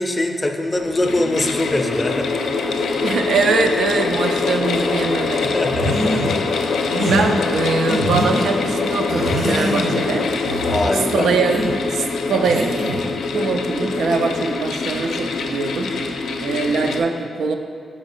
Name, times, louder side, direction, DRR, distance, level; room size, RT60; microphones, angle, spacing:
voice 1, 0.0-2.3 5.4-6.2 10.7-11.3, left 1 dB, 20° left, 4 dB, 0.4 m, -22 dB
sound 1, 0.8-17.0, left 4 dB, 85° left, 0.4 m, -23 dB
voice 2, 3.0-5.4 7.0-10.3 10.9-12.7 13.3-17.6, right 4 dB, 80° right, 5 dB, 0.4 m, -22 dB
sound 2, 5.7-6.3 6.9-7.2 7.9-8.5 9.1-10.0 10.4-10.9 11.5-11.7 12.5-13.1, right 1 dB, 55° right, 1.0 m, -24 dB
5.0 x 4.0 x 5.4 m, 2.2 s
wide cardioid pair, 140°, 0 cm